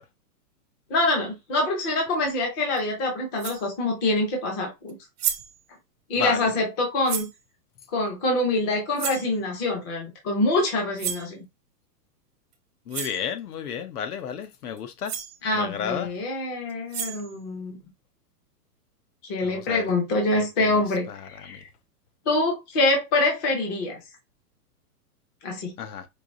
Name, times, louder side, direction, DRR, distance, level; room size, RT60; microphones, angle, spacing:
voice 1, 0.9-5.0 6.1-7.3 7.9-11.4 15.4-17.8 19.3-21.7 22.3-24.0 25.4-25.7, left 2 dB, 15° left, 0.6 m, -25 dB
sound 1, 2.8-2.9 3.4-3.7 4.9-5.0 5.2-5.6 7.1-7.4 9.0-9.3 11.0-11.3 12.5-12.6 12.9-13.2 14.8-14.9 15.0-15.4 16.7-17.4, right 10 dB, 40° right, 0.6 m, -31 dB
voice 2, 12.9-15.1 15.5-16.1 19.4-19.8 20.3-20.8 21.1-21.6 25.8-26.1, left 8 dB, 65° left, 0.9 m, -32 dB
4.7 x 2.6 x 2.6 m
hypercardioid pair, 165°, 48 cm